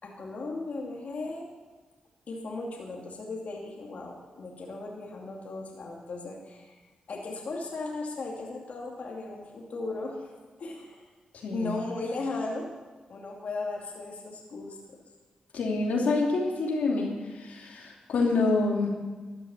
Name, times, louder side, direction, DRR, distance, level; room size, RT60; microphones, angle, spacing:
voice 1, 0.0-1.5 2.3-6.7 7.1-10.3 10.6-11.0 11.5-12.7 13.1-15.0, left 3 dB, 65° left, -1 dB, 2.5 m, -36 dB
voice 2, 15.5-18.9, left 3 dB, 90° left, -1 dB, 2.8 m, -27 dB
13.5 x 10.5 x 7.1 m, 1.3 s
cardioid pair, 70°, 3 cm